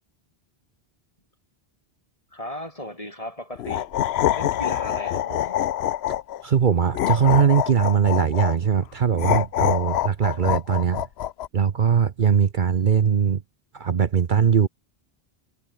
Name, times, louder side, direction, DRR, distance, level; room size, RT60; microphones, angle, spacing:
voice 1, 2.3-3.9 4.4-5.7, left 1 dB, 35° left, 7.5 m, -36 dB
sound 1, 3.6-6.4 6.9-8.6 9.2-11.5, left 12 dB, 85° left, 0.9 m, -25 dB
voice 2, 6.4-11.1 11.5-13.4 13.7-14.7, right 7 dB, 55° right, 1.0 m, -20 dB
omnidirectional pair, 1.1 m